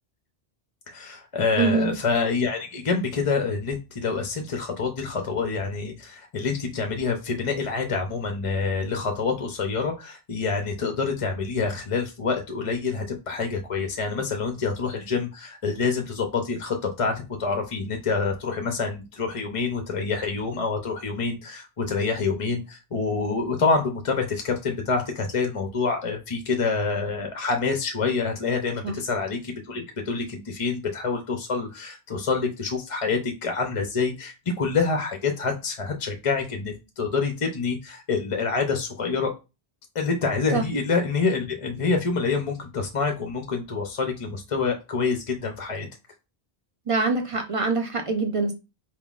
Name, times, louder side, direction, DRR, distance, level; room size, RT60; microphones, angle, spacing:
voice 1, 0.9-39.3 39.9-45.9, left 4 dB, 40° left, 4 dB, 0.5 m, -27 dB
voice 2, 1.6-1.9 28.8-29.0 40.5-40.7 46.9-48.5, right 4 dB, 40° right, 4 dB, 0.6 m, -24 dB
4.6 x 3.7 x 2.4 m, 0.28 s
omnidirectional pair, 1.0 m